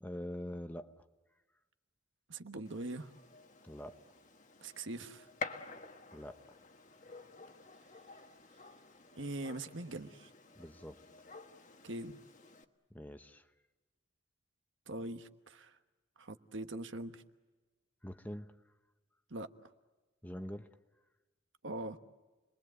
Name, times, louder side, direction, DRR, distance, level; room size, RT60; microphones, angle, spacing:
voice 1, 0.0-1.0 3.6-4.0 6.1-6.6 10.6-11.0 12.9-13.5 18.0-18.6 20.2-20.7, left 1 dB, 10° left, 8 dB, 0.8 m, -44 dB
voice 2, 2.3-3.1 4.6-5.3 9.1-10.3 11.8-12.2 14.9-15.8 16.2-17.2 19.3-19.7 21.6-22.0, right 2 dB, 65° right, 9 dB, 1.3 m, -42 dB
Gunshot gunfire, 2.6-12.6, left 4 dB, 35° left, 1.4 m, -50 dB
30.0 x 22.0 x 7.9 m, 1.2 s
head